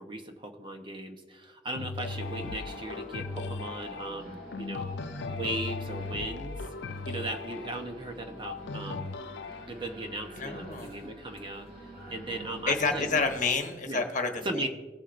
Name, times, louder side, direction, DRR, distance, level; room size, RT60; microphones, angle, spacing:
voice 1, 0.0-4.9 5.3-6.6 7.1-9.2 9.7-13.2 13.9-14.0 14.4-14.7, right 1 dB, 30° right, 4 dB, 0.9 m, -37 dB
sound 1, 1.7-9.7, left 4 dB, 70° left, 0.4 m, -38 dB
sound 2, 2.0-13.5, right 1 dB, 60° right, 3.0 m, -46 dB
voice 2, 10.4-10.9 12.7-14.7, left 4 dB, 45° left, 5 dB, 1.1 m, -29 dB
18.0 x 7.3 x 2.6 m, 1.4 s
head